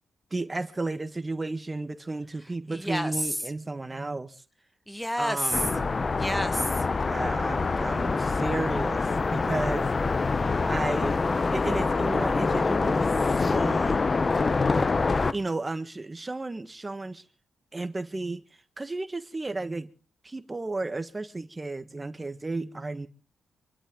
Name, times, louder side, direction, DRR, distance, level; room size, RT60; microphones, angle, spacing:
voice 1, 0.3-4.4 5.2-5.9 7.1-9.9 10.7-11.2 11.5-13.1 13.4-14.0 15.3-17.2 17.7-18.4 18.8-19.9 20.2-23.1, right 2 dB, 25° right, 1.6 m, -33 dB
voice 2, 2.7-3.4 4.9-5.7 6.2-6.8, equal, 5° left, 1.4 m, -29 dB
sound 1, 5.5-15.3, left 4 dB, 40° left, 0.9 m, -25 dB
26.5 x 12.5 x 3.9 m
supercardioid pair, 55°, 0 cm